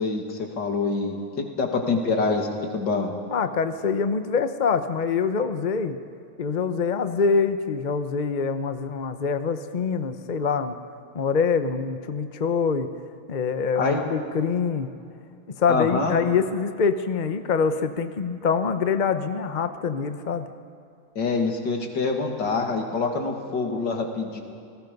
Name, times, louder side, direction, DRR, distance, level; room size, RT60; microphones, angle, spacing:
voice 1, 0.0-2.5 2.7-3.1 13.8-14.0 15.7-16.1 21.2-24.4, left 4 dB, 65° left, 2 dB, 2.8 m, -25 dB
voice 2, 3.3-6.0 6.4-10.7 11.1-12.9 13.3-14.9 15.6-20.4, left 5 dB, 45° left, 9 dB, 0.5 m, -25 dB
29.0 x 19.0 x 5.4 m, 2.6 s
omnidirectional pair, 2.1 m